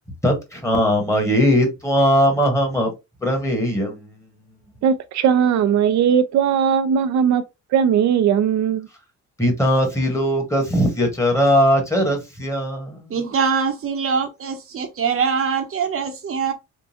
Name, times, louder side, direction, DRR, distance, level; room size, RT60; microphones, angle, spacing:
voice 1, 0.2-2.9 3.2-4.1 9.4-13.1, equal, 10° left, 1.3 m, -19 dB
voice 2, 4.8-7.4 7.7-8.9, right 8 dB, 65° right, 0.6 m, -18 dB
voice 3, 13.1-16.5, right 6 dB, 45° right, 0.9 m, -23 dB
3.7 x 2.2 x 2.8 m
cardioid pair, 90°, 30 cm